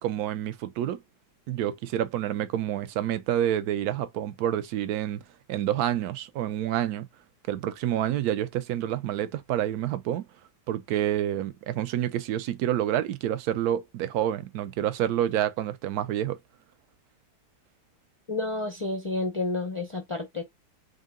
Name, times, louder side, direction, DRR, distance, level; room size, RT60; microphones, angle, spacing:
voice 1, 0.0-1.0 1.5-5.2 5.5-7.1 7.5-10.2 10.7-16.4, right 11 dB, 70° right, 1.0 m, -28 dB
voice 2, 18.3-20.4, left 2 dB, 55° left, 0.3 m, -30 dB
3.7 x 2.5 x 3.5 m
omnidirectional pair, 1.8 m